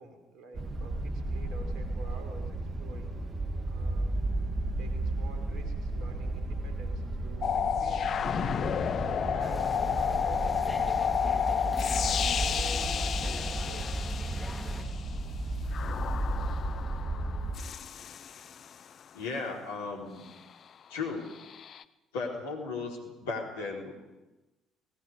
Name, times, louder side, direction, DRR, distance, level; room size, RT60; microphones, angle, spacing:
voice 1, 0.0-3.2 3.7-4.1 4.8-8.8 9.3-14.1, right 3 dB, 55° right, 6 dB, 4.5 m, -49 dB
sound 1, 0.5-17.5, right 2 dB, 35° right, 2.4 m, -34 dB
sound 2, 7.4-15.0 15.7-18.7 21.4-21.8, left 8 dB, 45° left, 0.8 m, -31 dB
sound 3, 9.4-14.8, left 2 dB, 15° left, 3.2 m, -43 dB
voice 2, 19.1-20.2 20.9-21.3 22.1-23.9, left 4 dB, 75° left, -1 dB, 4.5 m, -35 dB
30.0 x 19.5 x 5.1 m, 1.1 s
figure-of-eight pair, 50°, 0 cm